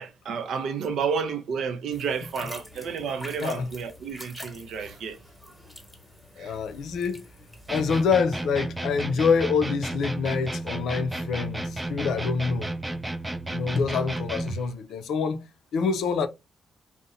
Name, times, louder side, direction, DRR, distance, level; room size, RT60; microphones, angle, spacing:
voice 1, 0.0-5.2 6.4-6.6, right 6 dB, 75° right, 0.5 m, -31 dB
sound 1, 1.9-8.1, left 1 dB, 5° left, 1.0 m, -46 dB
voice 2, 6.4-7.2 7.7-12.7 13.5-15.4 15.7-16.3, left 5 dB, 80° left, 0.4 m, -26 dB
sound 2, 7.7-14.7, right 2 dB, 15° right, 0.4 m, -32 dB
2.7 x 2.1 x 2.4 m
supercardioid pair, 60°, 0 cm